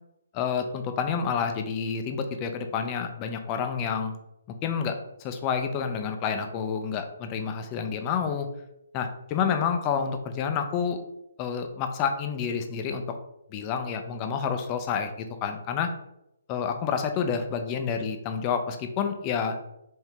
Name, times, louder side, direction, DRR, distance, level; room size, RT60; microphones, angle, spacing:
voice 1, 0.3-4.1 4.6-4.9 5.2-8.5 8.9-11.0 11.4-13.0 13.5-15.9 16.5-19.5, left 6 dB, 25° left, 6 dB, 0.5 m, -29 dB
4.7 x 2.7 x 3.4 m, 0.84 s
hypercardioid pair, 155°, 0 cm